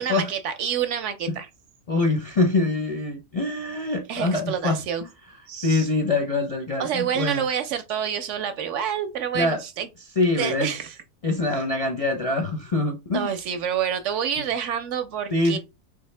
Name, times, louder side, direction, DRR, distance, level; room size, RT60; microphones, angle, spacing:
voice 1, 0.0-1.5 4.1-5.0 5.5-5.9 6.8-9.9 10.4-10.9 13.1-15.6, right 8 dB, 65° right, 0.9 m, -28 dB
voice 2, 1.9-5.1 5.6-7.5 9.3-9.6 10.2-10.7 11.2-13.3 15.3-15.6, left 2 dB, 45° left, 0.5 m, -24 dB
3.8 x 2.7 x 3.2 m
omnidirectional pair, 1.4 m